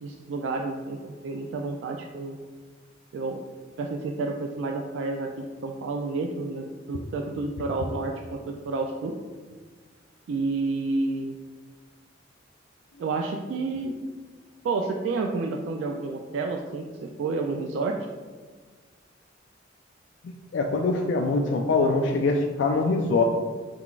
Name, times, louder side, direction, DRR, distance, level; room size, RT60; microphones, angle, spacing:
voice 1, 0.0-2.4 3.1-3.4 3.8-5.3 5.6-9.2 10.3-11.3 13.0-14.0 14.6-18.0, right 3 dB, 70° right, 2 dB, 0.3 m, -30 dB
voice 2, 20.2-23.2, left 3 dB, 65° left, 3 dB, 0.3 m, -24 dB
4.4 x 3.8 x 2.4 m, 1.5 s
head